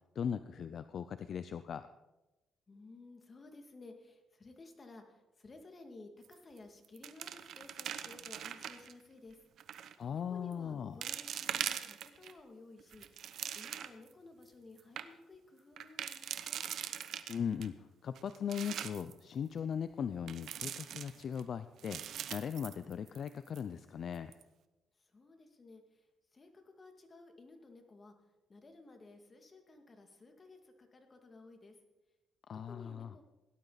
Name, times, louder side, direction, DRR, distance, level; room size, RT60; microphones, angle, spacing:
voice 1, 0.2-1.9 10.0-10.9 17.3-17.7 18.0-24.3 32.5-33.1, left 7 dB, 55° left, 12 dB, 0.5 m, -39 dB
voice 2, 2.7-9.4 10.1-16.6 25.0-26.1 26.3-28.1 28.5-31.8 32.5-33.2, left 3 dB, 30° left, 4 dB, 2.3 m, -55 dB
Rosary beads picking up and putting down, 6.2-6.6 6.8-8.9 9.6-10.0 10.5-10.6 11.0-12.3 12.8-14.1 14.5-14.6 14.8-15.1 15.8-17.7 18.2-19.1 20.3-21.4 21.8-23.3 23.6-23.7 24.2-24.4, right 9 dB, 70° right, 0.9 m, -41 dB
17.5 x 12.0 x 4.1 m, 1.0 s
cardioid pair, 90°, 0 cm